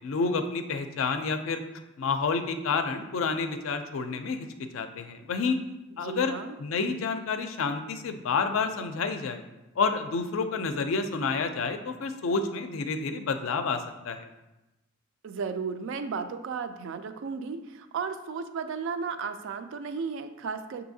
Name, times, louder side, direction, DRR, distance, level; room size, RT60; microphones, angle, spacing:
voice 1, 0.0-1.6 2.0-5.6 6.0-9.4 9.8-14.3, left 4 dB, 70° left, 8 dB, 0.4 m, -29 dB
voice 2, 6.0-6.6 15.2-20.9, right 5 dB, 65° right, 8 dB, 0.3 m, -34 dB
6.2 x 2.7 x 2.7 m, 0.99 s
head